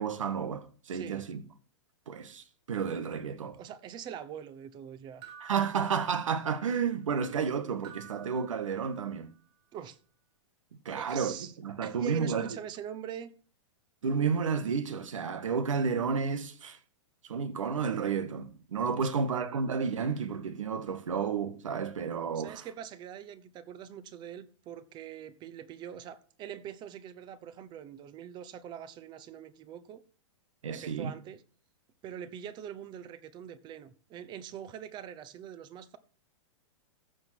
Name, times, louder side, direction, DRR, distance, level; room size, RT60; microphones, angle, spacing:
voice 1, 0.0-1.4 2.1-3.6 5.4-9.3 10.8-12.6 14.0-16.8 17.2-22.7 30.6-31.1, right 6 dB, 85° right, 1.6 m, -31 dB
voice 2, 0.9-1.2 3.5-5.2 9.7-10.0 10.9-11.5 11.8-13.3 19.0-19.3 22.3-30.0 30.7-31.4 32.0-36.0, right 9 dB, 30° right, 0.9 m, -43 dB
sound 1, 5.2-6.7 7.8-9.3, right 8 dB, 50° right, 4.5 m, -52 dB
14.5 x 5.3 x 6.0 m
hypercardioid pair, 135°, 16 cm